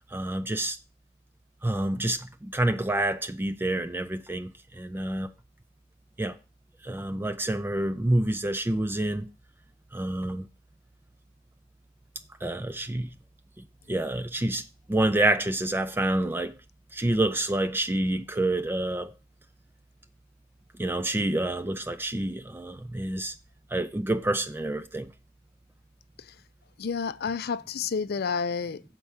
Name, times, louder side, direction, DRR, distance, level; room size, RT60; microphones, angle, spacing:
voice 1, 0.1-0.8 1.6-5.3 6.2-6.4 6.8-9.3 9.9-10.5 12.4-13.1 13.9-16.5 16.9-19.1 20.8-23.3 23.7-25.1, right 1 dB, 10° right, 0.3 m, -28 dB
voice 2, 26.8-28.8, left 5 dB, 55° left, 0.5 m, -30 dB
7.6 x 4.5 x 7.1 m
head